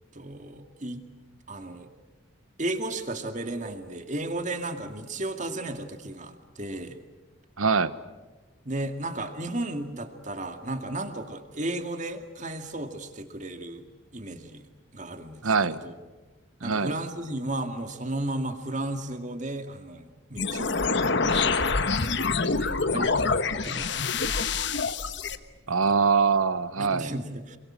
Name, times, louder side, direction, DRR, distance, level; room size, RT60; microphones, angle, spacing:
voice 1, 0.1-1.0 1.5-1.9 2.6-6.9 8.7-13.9 14.1-15.9 16.6-20.8 21.2-22.3 22.6-24.5 25.7-25.9 26.8-27.6, right 2 dB, 35° right, 7 dB, 2.2 m, -34 dB
voice 2, 7.6-7.9 15.4-15.8 16.6-16.9 25.7-27.1, right 5 dB, 90° right, 14 dB, 1.2 m, -23 dB
sound 1, 20.4-25.4, left 4 dB, 55° left, 1.3 m, -26 dB
27.5 x 24.0 x 8.8 m, 1.2 s
head